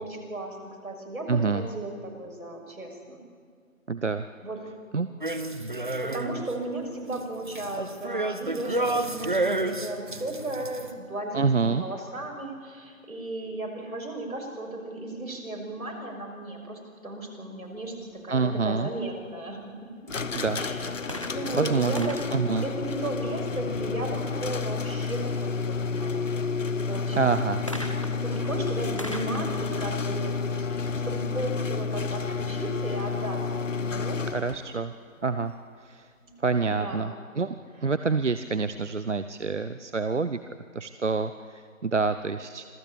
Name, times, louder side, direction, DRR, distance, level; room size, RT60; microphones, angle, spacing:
voice 1, 0.0-3.2 4.4-4.6 6.0-19.6 20.5-22.3 22.6-26.4 26.8-27.4 27.6-30.4 30.7-34.5 36.2-36.3 36.7-37.1, right 2 dB, 85° right, 1 dB, 6.5 m, -35 dB
voice 2, 1.3-1.7 3.9-4.2 4.9-5.1 11.3-11.8 18.3-18.9 20.3-20.6 21.6-22.6 27.1-27.6 34.3-34.9 35.2-35.5 35.9-36.0 36.4-37.6 37.8-40.4 40.7-42.6, right 4 dB, 60° right, 11 dB, 0.9 m, -27 dB
sound 1, 5.2-6.5 6.9-10.9, right 2 dB, 35° right, 1.1 m, -30 dB
sound 2, 20.1-34.8, left 5 dB, 65° left, 1.0 m, -30 dB
sound 3, 21.1-23.6 27.7-31.3 32.1-32.2, equal, 25° left, 1.0 m, -42 dB
26.0 x 15.0 x 8.6 m, 2.1 s
figure-of-eight pair, 175°, 41 cm